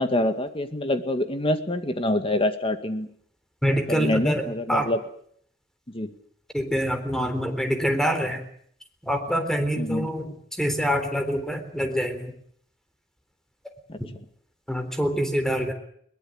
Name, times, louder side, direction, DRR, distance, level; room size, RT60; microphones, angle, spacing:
voice 1, 0.0-3.1 3.9-5.0 5.9-6.1 9.8-10.1 13.9-14.0, left 1 dB, 30° left, 8 dB, 2.1 m, -26 dB
voice 2, 3.6-4.4 4.7-4.9 6.5-8.4 9.1-12.3 14.0-14.1 14.7-15.7, equal, 5° left, 7 dB, 3.7 m, -25 dB
22.0 x 19.5 x 9.0 m, 0.66 s
head